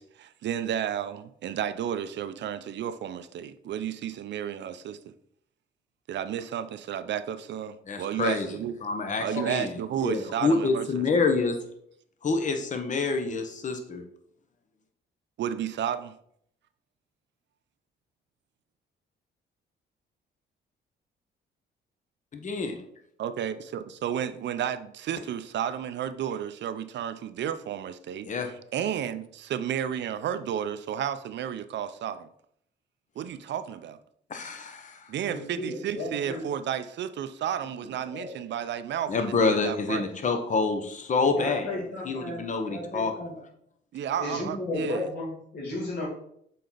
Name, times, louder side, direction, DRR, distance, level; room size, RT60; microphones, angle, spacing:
voice 1, 0.0-5.0 6.1-8.8 9.2-11.1 15.4-16.2 23.2-32.3 33.2-34.0 35.1-40.0 43.9-45.1, right 9 dB, 65° right, 11 dB, 0.6 m, -32 dB
voice 2, 7.9-8.5 8.8-9.7 10.0-11.6 12.2-14.0 22.3-22.8 28.2-28.5 34.3-35.1 39.1-43.3, left 4 dB, 40° left, 5 dB, 1.0 m, -27 dB
voice 3, 35.2-36.4 38.1-38.3 41.2-42.4 42.7-43.3 44.2-46.0, left 1 dB, 55° left, -5 dB, 2.4 m, -34 dB
6.8 x 4.3 x 3.9 m, 0.70 s
cardioid pair, 90°, 20 cm